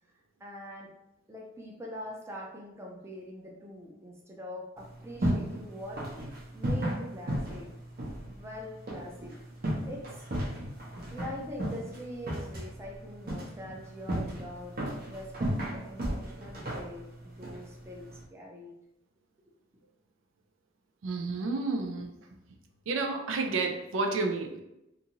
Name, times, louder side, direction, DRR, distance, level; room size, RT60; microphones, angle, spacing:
voice 1, 0.4-0.9 1.3-7.7 8.2-9.3 9.8-10.3 11.1-14.8 15.1-18.7, equal, 15° right, -2 dB, 0.4 m, -43 dB
sound 1, 4.8-18.2, right 1 dB, 50° right, 0.7 m, -35 dB
voice 2, 21.0-22.1 22.9-24.6, right 3 dB, 85° right, 3 dB, 0.4 m, -30 dB
2.5 x 2.5 x 2.9 m, 0.89 s
head